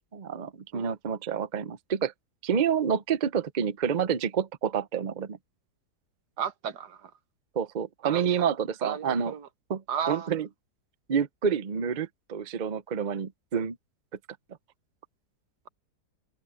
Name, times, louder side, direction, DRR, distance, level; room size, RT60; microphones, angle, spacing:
voice 1, 0.1-2.1 2.4-5.4 7.5-9.3 9.7-10.5 11.1-13.8, right 7 dB, 45° right, 0.6 m, -28 dB
voice 2, 6.4-7.0 8.0-8.2 8.8-9.4 9.9-10.3, right 7 dB, 75° right, 1.6 m, -33 dB
omnidirectional pair, 1.8 m